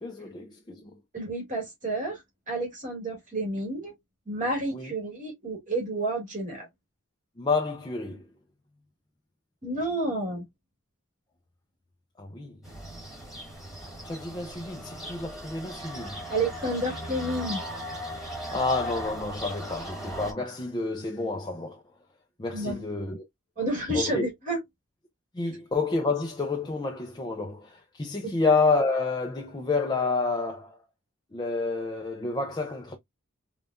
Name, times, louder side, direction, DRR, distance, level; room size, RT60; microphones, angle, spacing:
voice 1, 0.0-0.8 4.7-4.9 7.4-8.3 12.2-12.6 14.0-16.2 18.5-21.8 22.4-23.2 23.9-24.3 25.3-30.8 31.3-33.0, left 3 dB, 20° left, 0.5 m, -29 dB
voice 2, 1.1-2.2 2.5-3.9 4.3-6.7 9.6-10.4 16.3-17.6 22.5-22.8 23.6-24.6, right 1 dB, 40° right, 2.2 m, -30 dB
sound 1, 12.6-20.3, equal, ahead, 1.8 m, -38 dB
5.3 x 2.4 x 2.5 m
head